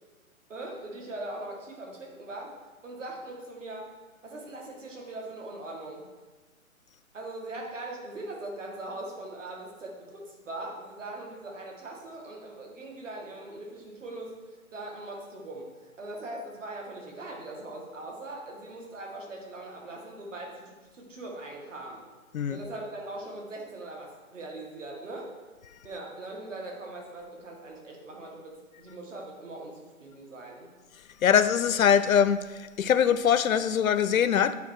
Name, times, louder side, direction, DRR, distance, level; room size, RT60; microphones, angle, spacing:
voice 1, 0.5-2.5 2.8-3.9 4.2-6.1 7.1-22.0 22.5-25.3 25.8-30.7, right 2 dB, 60° right, 2.0 m, -41 dB
voice 2, 31.2-34.5, left 8 dB, 70° left, 0.6 m, -23 dB
8.6 x 3.5 x 6.4 m
hypercardioid pair, 175°, 43 cm